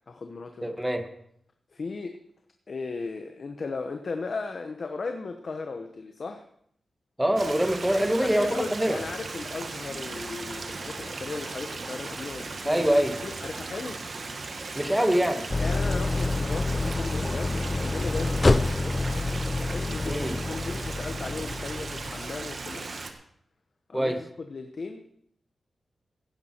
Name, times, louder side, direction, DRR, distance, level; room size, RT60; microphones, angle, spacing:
voice 1, 0.1-0.8 1.7-2.2 2.7-6.4 7.9-12.9 13.2-14.0 15.6-19.1 19.7-23.0 23.9-25.1, left 4 dB, 55° left, 5 dB, 1.0 m, -36 dB
voice 2, 0.6-1.1 7.2-9.0 12.6-13.2 14.7-15.5 20.0-20.3 23.9-24.2, right 1 dB, 10° right, 6 dB, 1.6 m, -24 dB
Stream, 7.4-23.1, right 3 dB, 55° right, 1.5 m, -37 dB
Idling, 15.5-22.6, left 2 dB, 30° left, 0.5 m, -27 dB
16.0 x 10.5 x 4.5 m, 0.68 s
wide cardioid pair, 95°, 0 cm